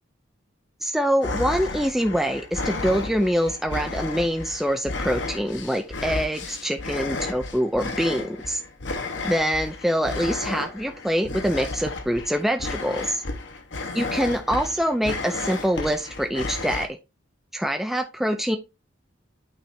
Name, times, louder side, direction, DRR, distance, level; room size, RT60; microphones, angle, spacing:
voice 1, 0.8-8.6 9.2-13.2 13.9-16.9 17.5-18.6, equal, ahead, 4 dB, 0.5 m, -25 dB
sound 1, 1.2-16.9, left 3 dB, 70° left, 1.2 m, -32 dB
8.9 x 4.3 x 3.4 m, 0.25 s
head